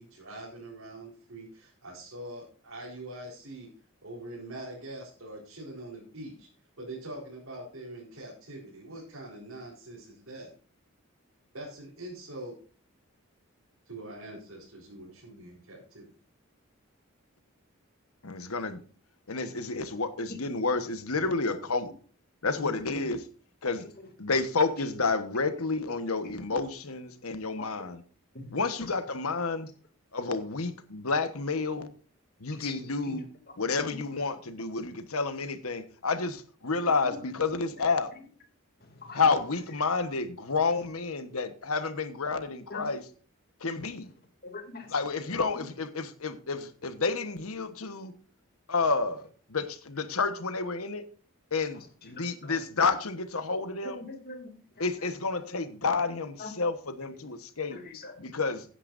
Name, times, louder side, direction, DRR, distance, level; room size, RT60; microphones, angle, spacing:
voice 1, 0.0-3.7 4.0-6.5 6.8-10.5 11.5-12.6 13.8-16.1, right 1 dB, 75° right, 4.2 m, -43 dB
voice 2, 18.2-18.8 19.3-21.9 22.4-23.2 23.6-23.9 24.2-28.0 28.5-29.7 30.1-31.9 32.4-33.3 33.6-38.1 39.1-43.0 43.6-44.1 44.9-48.1 48.7-51.0 51.5-54.0 54.8-57.8 58.2-58.6, left 4 dB, 80° left, 1.3 m, -30 dB
voice 3, 22.5-23.0 27.6-27.7 28.3-28.6 32.5-33.1 33.5-33.6 33.9-34.0 37.0-37.2 38.9-39.2 42.7-42.9 44.4-44.9 51.7-52.6 53.8-54.5 54.8-54.9 55.4-55.6 56.4-56.5 57.1-57.2 57.7-58.1 58.4-58.5, left 3 dB, 45° left, 2.6 m, -43 dB
16.0 x 9.9 x 2.6 m
head